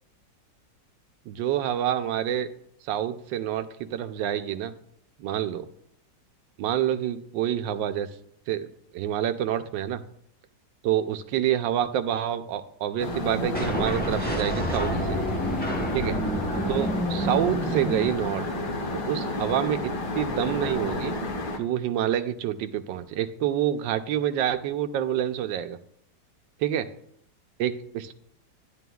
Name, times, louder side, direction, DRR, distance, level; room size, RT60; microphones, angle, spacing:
voice 1, 1.3-2.5 2.8-4.7 5.2-5.7 6.6-8.1 8.5-8.7 8.9-10.0 10.8-15.2 15.9-16.2 16.7-18.4 19.0-21.1 21.6-25.8 26.6-26.9 27.6-28.1, right 11 dB, 85° right, 9 dB, 1.3 m, -27 dB
sound 1, 13.0-21.6, left 2 dB, 55° left, 1.4 m, -31 dB
sound 2, 13.5-18.7, equal, 15° left, 0.3 m, -29 dB
11.0 x 10.5 x 2.3 m, 0.70 s
omnidirectional pair, 2.0 m